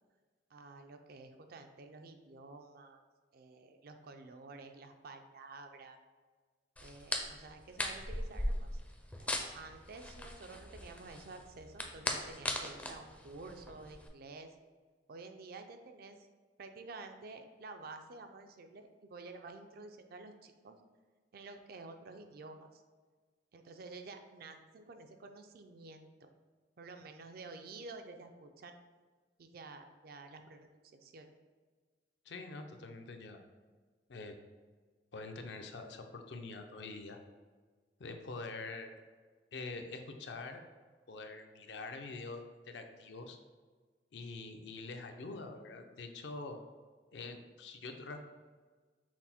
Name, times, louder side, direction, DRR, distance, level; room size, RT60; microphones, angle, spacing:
voice 1, 0.5-3.0 3.3-6.0 6.8-8.8 9.2-14.5 15.1-16.3 16.6-20.8 21.3-22.8 23.5-26.3 26.8-28.8 29.4-31.3, right 3 dB, 60° right, 6 dB, 0.4 m, -51 dB
sound 1, 6.8-14.1, left 1 dB, 10° left, 0.4 m, -39 dB
voice 2, 32.3-33.4 34.1-34.4 35.1-37.2 38.0-38.9 39.5-40.6 41.1-43.4 44.1-46.6 47.1-48.2, left 3 dB, 70° left, 5 dB, 0.5 m, -45 dB
5.9 x 2.1 x 4.2 m, 1.4 s
head